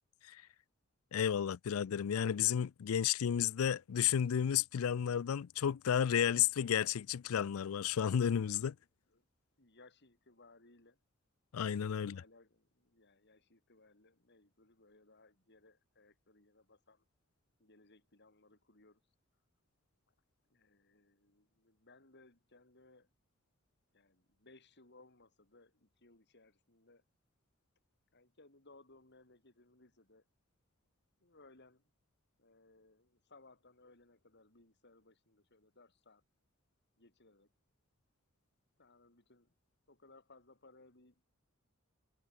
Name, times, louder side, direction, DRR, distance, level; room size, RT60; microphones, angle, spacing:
voice 1, 1.1-8.7 11.5-12.2, left 9 dB, 85° left, 0.4 m, -32 dB
voice 2, 8.7-9.3 9.6-11.0 11.9-17.1 17.6-19.0 20.5-23.1 23.9-27.0 28.1-30.2 31.2-31.8 32.4-36.2 37.0-37.5 38.8-39.5 39.9-41.3, left 2 dB, 55° left, 5.3 m, -64 dB
head